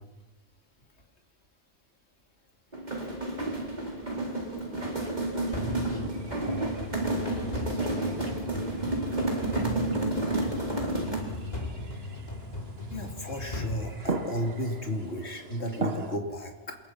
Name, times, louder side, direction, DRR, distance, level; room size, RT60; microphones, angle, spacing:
sound 1, 2.7-11.4, right 2 dB, 40° right, 4.4 m, -31 dB
voice 1, 4.6-6.0 6.5-8.5 9.1-10.7, equal, 85° left, -1 dB, 6.3 m, -49 dB
sound 2, 5.3-16.2, right 3 dB, 60° right, 1.9 m, -41 dB
sound 3, 5.5-14.7, left 1 dB, 35° left, 3.1 m, -38 dB
voice 2, 12.9-16.8, left 1 dB, 65° left, 3 dB, 3.2 m, -33 dB
27.5 x 22.0 x 5.9 m, 1.1 s
omnidirectional pair, 1.2 m